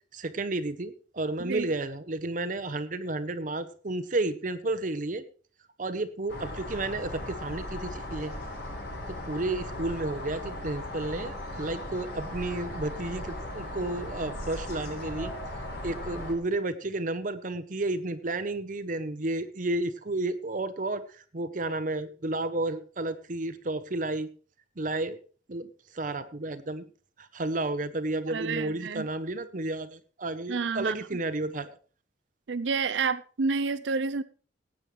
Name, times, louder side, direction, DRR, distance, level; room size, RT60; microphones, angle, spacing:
voice 1, 0.1-5.2 5.8-8.3 9.1-24.3 24.8-25.2 25.5-26.8 27.2-31.7, right 2 dB, 45° right, 11 dB, 0.8 m, -32 dB
sound 1, 6.3-16.3, left 1 dB, 65° left, 4.5 m, -37 dB
voice 2, 28.3-29.1 30.5-30.9 32.5-34.2, right 4 dB, 90° right, 16 dB, 0.6 m, -29 dB
18.0 x 8.9 x 3.2 m, 0.40 s
head